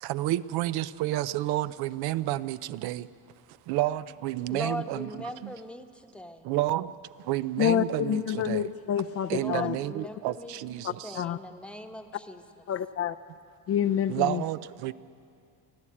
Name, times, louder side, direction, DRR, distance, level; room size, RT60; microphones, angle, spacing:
voice 1, 0.0-3.1 3.7-5.5 6.4-7.0 7.2-8.7 9.3-11.2 14.1-14.9, right 15 dB, 70° right, 16 dB, 0.6 m, -30 dB
voice 2, 4.5-6.5 9.3-12.6, left 1 dB, 5° left, 5 dB, 1.0 m, -40 dB
voice 3, 7.6-9.8 10.8-11.4 12.7-13.2 13.7-14.4, left 10 dB, 35° left, 10 dB, 0.4 m, -28 dB
24.0 x 15.0 x 8.5 m, 2.4 s
cardioid pair, 145°, 40 cm